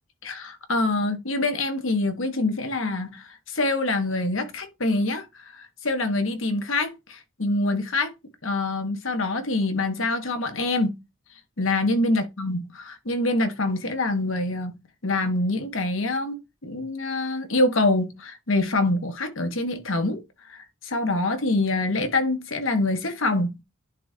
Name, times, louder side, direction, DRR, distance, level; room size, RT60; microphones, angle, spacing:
voice 1, 0.2-5.2 5.5-8.1 8.4-11.0 11.6-20.2 20.5-23.6, left 2 dB, 80° left, 1.3 m, -25 dB
10.5 x 3.7 x 2.8 m
head